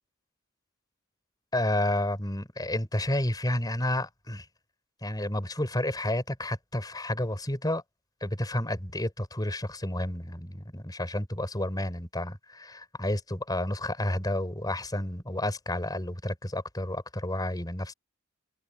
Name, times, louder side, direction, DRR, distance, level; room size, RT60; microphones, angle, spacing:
voice 1, 1.5-4.5 5.0-7.8 8.2-17.9, left 1 dB, 20° left, 4.7 m, -30 dB
head